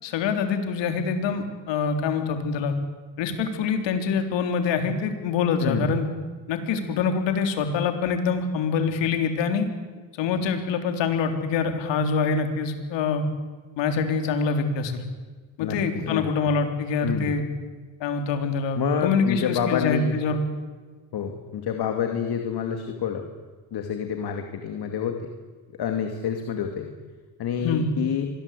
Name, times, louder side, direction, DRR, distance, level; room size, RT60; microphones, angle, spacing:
voice 1, 0.0-2.7 3.2-6.1 6.5-9.7 10.2-13.3 13.8-15.0 15.6-17.5 18.0-20.4 27.6-27.9, left 5 dB, 75° left, 6 dB, 3.8 m, -25 dB
voice 2, 5.6-6.0 15.6-16.2 17.0-17.4 18.8-20.2 21.1-23.2 23.7-25.3 25.8-26.9 27.4-28.3, left 7 dB, 60° left, 5 dB, 2.6 m, -28 dB
25.5 x 21.0 x 8.5 m, 1.4 s
cardioid pair, 100°, 44 cm